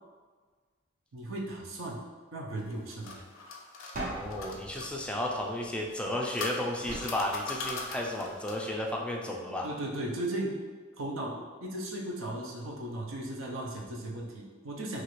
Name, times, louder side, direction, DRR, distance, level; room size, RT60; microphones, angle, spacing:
voice 1, 1.1-2.0 2.3-3.2 9.6-10.6 11.0-15.0, right 1 dB, 85° right, -1 dB, 0.6 m, -36 dB
sound 1, 2.6-4.9 5.9-8.7, left 4 dB, 80° left, 0.5 m, -40 dB
sound 2, 3.9-6.2 6.8-8.2, right 1 dB, 45° right, 0.6 m, -42 dB
voice 2, 4.1-9.7, left 1 dB, 5° left, -1 dB, 0.3 m, -33 dB
3.0 x 2.4 x 3.0 m, 1.5 s
head